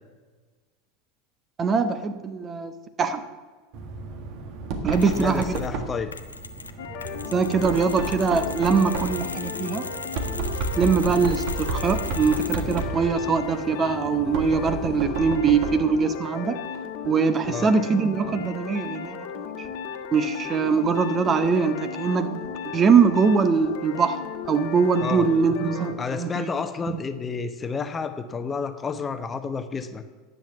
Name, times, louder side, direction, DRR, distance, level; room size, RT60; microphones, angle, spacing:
voice 1, 1.6-2.7 3.0-3.2 4.8-5.5 7.3-9.9 10.8-16.6 17.0-19.7 20.1-24.2 24.5-26.5 26.9-27.0, right 5 dB, 30° right, 10 dB, 1.0 m, -22 dB
Knock, 3.7-16.0, right 4 dB, 55° right, 1.7 m, -32 dB
Mechanisms, 4.9-5.7 6.1-13.0, left 3 dB, 85° left, 0.7 m, -38 dB
voice 2, 5.0-6.1 17.5-17.7 25.0-25.3 26.0-30.1, left 5 dB, 25° left, 9 dB, 1.0 m, -30 dB
sound 1, 6.8-25.9, left 7 dB, 60° left, 1.5 m, -35 dB
10.5 x 7.7 x 7.9 m, 1.4 s
figure-of-eight pair, 80°, 0 cm